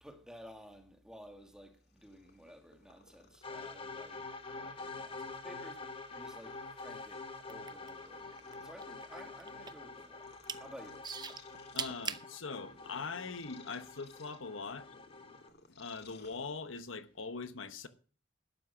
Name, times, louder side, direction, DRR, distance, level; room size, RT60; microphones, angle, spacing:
voice 1, 0.0-10.3 10.6-11.2, equal, 5° right, 2.1 m, -54 dB
Purr, 1.7-16.9, left 4 dB, 55° left, 2.2 m, -62 dB
sound 1, 3.4-15.5, left 3 dB, 30° left, 1.4 m, -47 dB
sound 2, 7.4-8.5 8.8-9.9 10.3-10.6 11.0-12.3 13.0-13.1, right 6 dB, 20° right, 0.7 m, -40 dB
voice 2, 11.7-14.9 15.7-17.9, left 4 dB, 80° left, 1.1 m, -42 dB
12.0 x 8.6 x 6.3 m
head